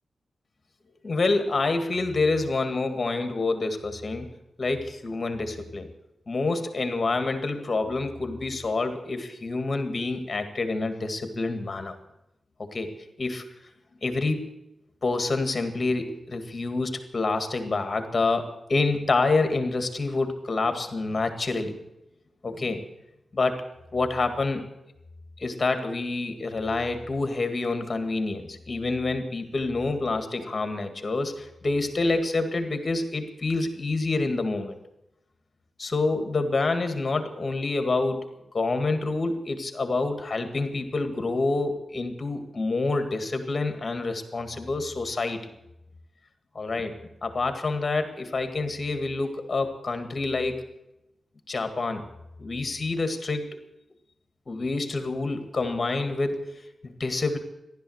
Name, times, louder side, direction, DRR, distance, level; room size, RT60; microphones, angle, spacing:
voice 1, 1.0-4.3 4.6-5.9 6.3-12.0 12.6-12.9 13.2-13.4 14.0-14.4 15.0-21.8 22.4-22.8 23.3-24.7 25.4-34.7 35.8-38.3 38.5-45.4 46.5-46.9 47.2-50.6 51.5-52.0 52.4-53.6 54.5-56.5 56.8-57.4, left 3 dB, 35° left, 8 dB, 1.9 m, -27 dB
15.0 x 11.5 x 8.0 m, 0.89 s
wide cardioid pair, 150°, 0 cm